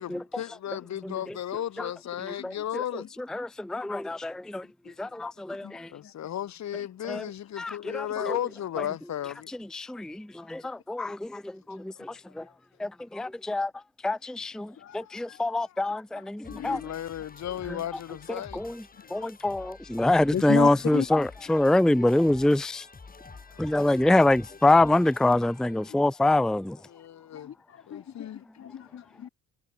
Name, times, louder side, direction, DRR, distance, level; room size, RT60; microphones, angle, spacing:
voice 1, 0.0-3.1 5.9-9.5 14.9-15.8 16.5-18.6 23.5-23.7 26.9-27.5 27.9-28.4, left 11 dB, 65° left, 2.2 m, -35 dB
voice 2, 2.4-2.8 3.3-4.7 5.0-5.9 7.1-7.2 7.6-8.4 9.7-12.4 12.8-13.7 14.0-16.8 18.5-18.8 19.1-22.9 23.6-26.8, left 2 dB, ahead, 0.5 m, -25 dB
voice 3, 16.1-16.8 18.9-19.3 20.3-21.1 27.3-28.3 28.6-29.3, left 9 dB, 50° left, 1.1 m, -34 dB
sound 1, 16.4-25.9, left 4 dB, 30° left, 7.1 m, -49 dB
cardioid pair, 90°, 30 cm